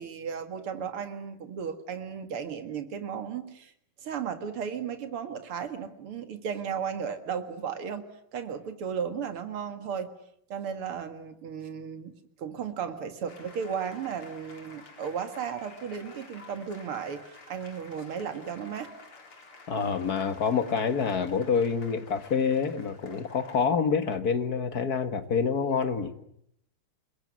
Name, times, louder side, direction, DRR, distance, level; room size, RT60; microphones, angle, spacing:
voice 1, 0.0-3.7 4.0-10.1 10.5-18.9, right 7 dB, 80° right, 7 dB, 2.8 m, -35 dB
sound 1, 13.3-23.7, left 3 dB, 80° left, 4.8 m, -51 dB
voice 2, 19.7-26.1, left 6 dB, 45° left, 9 dB, 2.1 m, -27 dB
27.0 x 22.0 x 9.6 m, 0.72 s
omnidirectional pair, 2.4 m